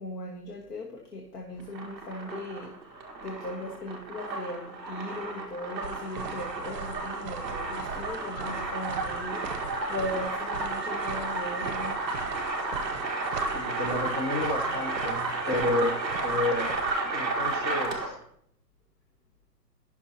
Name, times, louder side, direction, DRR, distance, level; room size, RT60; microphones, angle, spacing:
voice 1, 0.0-2.7 3.2-12.0, left 1 dB, 75° left, 0 dB, 1.6 m, -38 dB
sound 1, 1.6-18.2, right 3 dB, ahead, 0.6 m, -32 dB
sound 2, 5.8-16.9, right 6 dB, 40° right, 0.8 m, -42 dB
voice 2, 13.5-16.7 17.1-18.2, left 2 dB, 30° left, 3 dB, 1.0 m, -30 dB
15.5 x 6.0 x 2.9 m, 0.71 s
hypercardioid pair, 150°, 49 cm